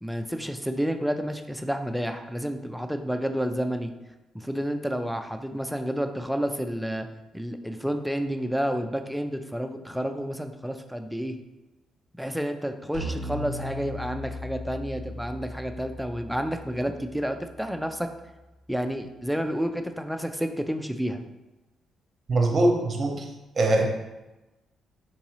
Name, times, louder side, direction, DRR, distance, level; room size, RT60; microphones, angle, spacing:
voice 1, 0.0-3.9 4.3-7.1 7.3-11.4 12.2-18.1 18.7-21.2, equal, ahead, 6 dB, 0.3 m, -30 dB
sound 1, 12.9-18.3, left 1 dB, 55° left, 1.1 m, -38 dB
voice 2, 22.3-23.3 23.6-23.8, right 2 dB, 40° right, 1 dB, 0.7 m, -22 dB
3.9 x 2.6 x 3.0 m, 1.0 s
cardioid pair, 90°, 0 cm